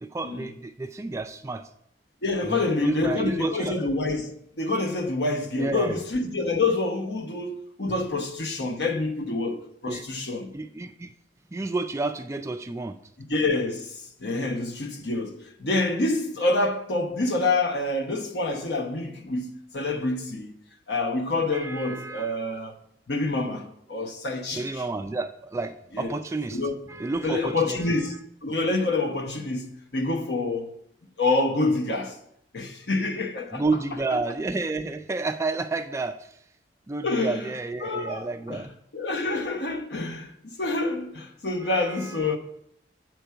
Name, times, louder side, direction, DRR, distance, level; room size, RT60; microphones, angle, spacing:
voice 1, 0.0-1.7 2.4-3.8 5.6-6.0 9.9-10.1 10.5-11.1 11.5-13.0 21.5-22.4 24.5-26.6 26.9-28.1 33.5-36.4 36.9-38.7 41.6-42.4, right 3 dB, 15° right, 0.3 m, -31 dB
voice 2, 2.2-10.5 13.3-20.5 20.9-22.8 23.1-24.8 25.9-26.2 26.5-26.7 27.2-28.2 28.4-30.7 31.2-32.2 32.5-33.6 34.1-34.2 37.0-37.5 37.8-38.6 38.9-42.4, left 2 dB, 65° left, 0.9 m, -27 dB
7.9 x 4.6 x 5.7 m
head